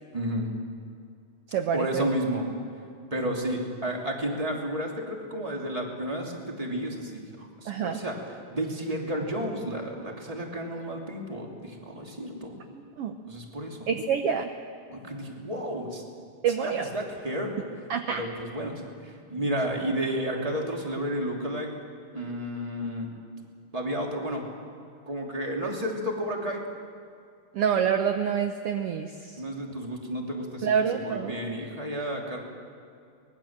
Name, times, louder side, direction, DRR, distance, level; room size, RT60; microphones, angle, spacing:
voice 1, 0.1-0.5 1.7-2.5 3.1-12.6 13.3-13.9 14.9-16.0 16.6-17.5 18.1-21.7 22.1-23.1 23.7-24.4 25.0-26.6 29.4-32.4, equal, 10° right, 0 dB, 2.7 m, -32 dB
voice 2, 1.5-2.1 7.7-8.0 12.7-13.1 13.9-14.5 16.4-16.9 17.9-18.2 27.5-29.3 30.6-31.3, right 7 dB, 70° right, 6 dB, 1.5 m, -27 dB
24.5 x 20.5 x 7.5 m, 2.4 s
omnidirectional pair, 3.8 m